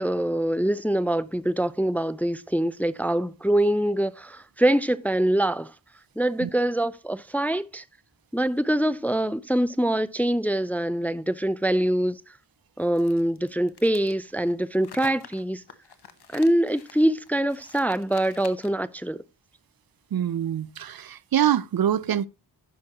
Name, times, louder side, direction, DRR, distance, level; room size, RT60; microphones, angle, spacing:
voice 1, 0.0-5.7 6.2-7.8 8.3-12.2 12.8-15.6 16.3-19.2, right 1 dB, 5° left, 0.4 m, -24 dB
sound 1, 12.9-18.9, left 7 dB, 70° left, 1.0 m, -47 dB
voice 2, 20.1-22.3, right 10 dB, 60° right, 0.5 m, -25 dB
14.5 x 6.0 x 2.9 m
wide cardioid pair, 60°, 41 cm